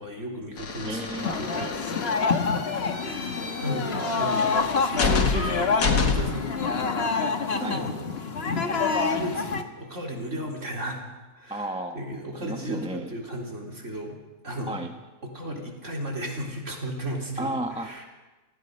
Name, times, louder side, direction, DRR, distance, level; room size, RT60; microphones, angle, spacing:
voice 1, 0.0-1.1 2.8-3.0 3.6-7.0 7.5-8.1 8.5-8.8 9.0-11.0 11.4-14.2 14.4-14.8 15.2-18.0, equal, 45° right, 0 dB, 4.2 m, -34 dB
sound 1, 0.6-6.5, left 4 dB, 65° left, 2.4 m, -29 dB
voice 2, 0.8-1.9 7.6-7.8 11.5-12.0 12.3-13.1 14.7-14.9 17.4-18.0, right 1 dB, 5° right, 4 dB, 1.1 m, -33 dB
sound 2, 1.2-9.6, left 4 dB, 40° left, 1.5 m, -27 dB
29.0 x 19.0 x 5.4 m, 1.2 s
omnidirectional pair, 1.8 m